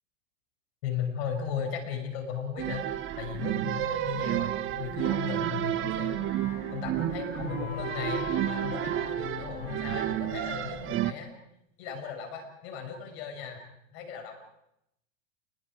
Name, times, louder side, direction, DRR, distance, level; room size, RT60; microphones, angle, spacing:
voice 1, 0.8-6.4 6.7-11.3 11.8-13.6 13.9-14.4, left 7 dB, 50° left, 4 dB, 6.2 m, -36 dB
sound 1, 2.6-11.1, right 13 dB, 30° right, 1.2 m, -31 dB
Wind instrument woodwind instrument, 4.9-11.5, left 4 dB, 70° left, 7.9 m, -43 dB
29.0 x 20.5 x 5.0 m, 0.82 s
hypercardioid pair, 105°, 39 cm